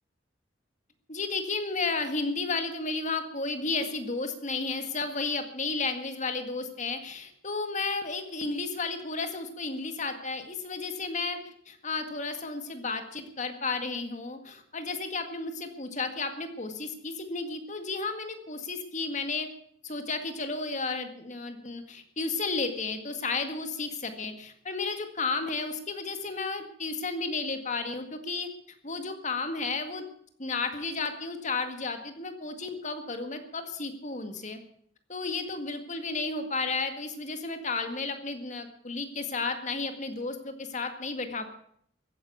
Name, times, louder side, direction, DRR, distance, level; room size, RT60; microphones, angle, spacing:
voice 1, 1.1-19.5 19.8-28.5 28.8-30.1 30.4-34.6 35.1-41.5, left 3 dB, 40° left, 7 dB, 1.9 m, -33 dB
15.5 x 9.9 x 8.5 m, 0.66 s
head